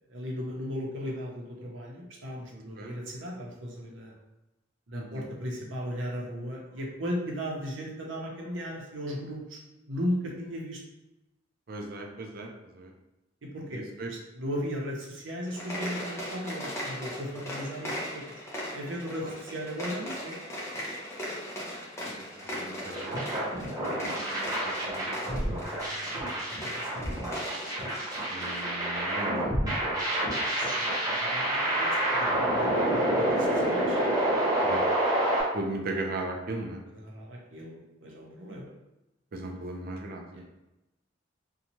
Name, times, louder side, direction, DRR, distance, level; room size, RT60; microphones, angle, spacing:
voice 1, 0.1-4.2 4.9-9.6 9.9-10.8 13.4-18.2 18.7-20.4 23.6-23.9 25.6-27.4 30.5-31.9 32.4-34.0 36.9-38.7 40.3-40.4, equal, 85° right, -2 dB, 0.7 m, -37 dB
voice 2, 2.5-2.9 4.9-5.3 11.7-12.9 13.7-14.1 19.2-19.3 22.0-25.6 28.3-29.6 34.6-34.8 35.5-36.8 39.3-40.4, right 2 dB, 50° right, 2 dB, 0.5 m, -38 dB
sound 1, 15.4-28.7, equal, 15° left, 0.6 m, -39 dB
sound 2, 22.9-35.4, right 1 dB, 20° right, 0.8 m, -28 dB
2.7 x 2.3 x 2.9 m, 0.96 s
head